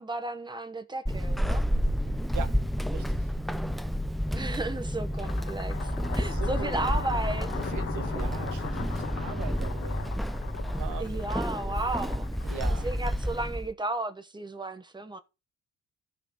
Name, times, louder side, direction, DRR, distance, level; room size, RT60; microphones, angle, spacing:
voice 1, 0.0-1.6 4.3-7.6 11.0-12.4 12.8-15.2, right 2 dB, 15° right, 1.0 m, -34 dB
Walk footsteps / Squeak, 1.1-13.7, equal, ahead, 0.4 m, -30 dB
voice 2, 2.9-3.3 6.1-7.0 7.6-10.1 10.5-11.3 12.4-12.9, right 6 dB, 75° right, 1.3 m, -41 dB
sound 1, 5.0-13.3, left 7 dB, 50° left, 1.3 m, -40 dB
14.5 x 5.9 x 3.0 m
cardioid pair, 90°, 30 cm